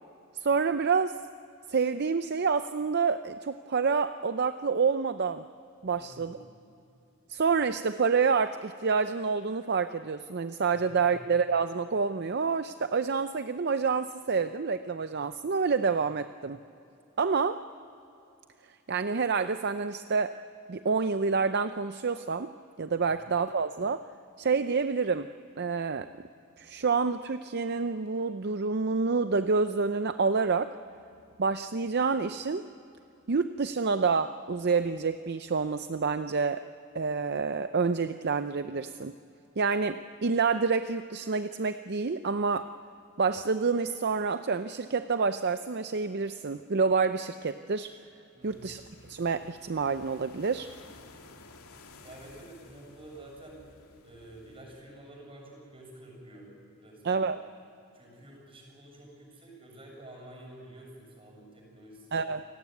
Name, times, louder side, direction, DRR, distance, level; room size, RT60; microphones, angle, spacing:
voice 1, 0.4-1.2 1.7-5.4 5.8-6.4 7.3-16.6 17.2-17.6 18.9-20.4 20.7-22.5 22.8-24.1 24.4-25.3 25.6-26.1 26.6-30.8 31.4-32.7 33.3-36.7 36.9-39.1 39.6-42.7 43.2-47.9 48.4-48.8 49.1-50.7 57.0-57.4 62.1-62.4, right 5 dB, 50° right, 11 dB, 0.6 m, -28 dB
voice 2, 5.9-6.4 48.3-48.7 52.0-53.6 54.0-56.5 56.8-57.3 57.9-62.2, right 1 dB, 25° right, 0 dB, 7.2 m, -49 dB
sound 1, 48.4-54.6, left 3 dB, 80° left, 2.5 m, -54 dB
29.0 x 18.0 x 9.4 m, 2.8 s
head